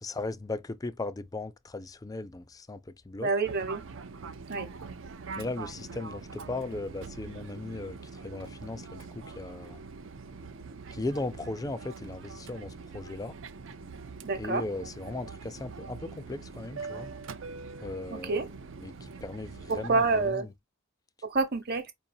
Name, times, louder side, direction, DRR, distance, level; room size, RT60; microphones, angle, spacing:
voice 1, 0.0-3.3 5.4-9.8 10.9-13.4 14.3-17.1 17.8-18.5 18.8-20.5, left 2 dB, 20° left, 0.4 m, -37 dB
voice 2, 3.2-3.8 4.5-4.7 14.2-14.6 18.1-18.5 19.7-20.4 21.2-21.9, right 3 dB, 50° right, 1.0 m, -28 dB
Fixed-wing aircraft airplane, 3.4-20.3, right 4 dB, 70° right, 0.5 m, -43 dB
4.7 x 2.6 x 2.6 m
head